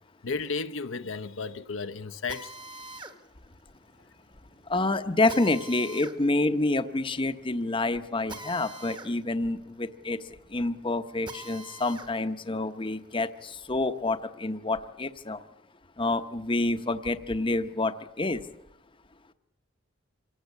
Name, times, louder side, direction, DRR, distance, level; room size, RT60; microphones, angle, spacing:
voice 1, 0.2-2.5, left 4 dB, 75° left, 0.8 m, -33 dB
Drill, 2.3-12.1 12.6-14.2, right 2 dB, 25° right, 1.2 m, -46 dB
voice 2, 4.7-10.2 10.5-15.4 16.0-18.4, left 2 dB, 25° left, 0.8 m, -28 dB
26.5 x 18.5 x 8.3 m
head